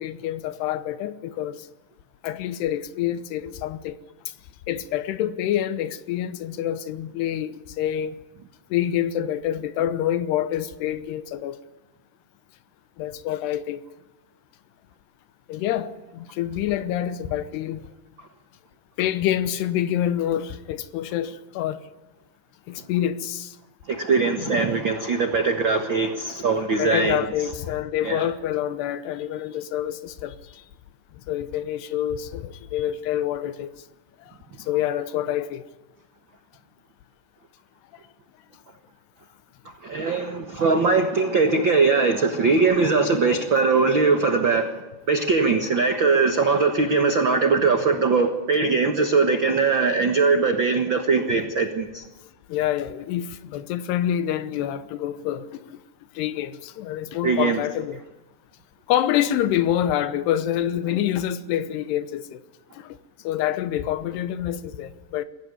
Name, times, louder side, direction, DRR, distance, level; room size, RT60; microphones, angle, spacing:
voice 1, 0.0-1.7 2.2-4.0 4.3-4.4 4.7-8.2 8.7-11.6 13.0-13.8 15.5-17.9 19.0-21.8 22.7-23.6 24.4-24.7 26.8-30.6 31.1-33.7 34.2-35.6 52.5-55.8 56.1-58.0 58.9-62.4 62.7-63.0 63.2-65.3, left 11 dB, 90° left, 3.0 m, -27 dB
voice 2, 23.9-27.3 28.0-28.3 39.8-44.7 45.1-52.0 57.2-57.6, right 4 dB, 75° right, 1.1 m, -21 dB
22.5 x 16.5 x 9.7 m
omnidirectional pair, 4.6 m